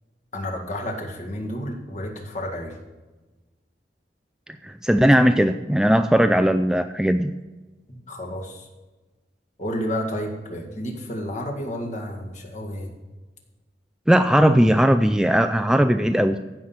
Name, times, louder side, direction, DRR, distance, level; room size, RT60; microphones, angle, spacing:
voice 1, 0.3-2.7 7.9-8.7 9.6-12.9, equal, 45° left, 2 dB, 1.9 m, -31 dB
voice 2, 4.6-7.3 14.1-16.4, equal, 5° right, 9 dB, 0.3 m, -18 dB
15.0 x 5.8 x 6.0 m, 1.2 s
head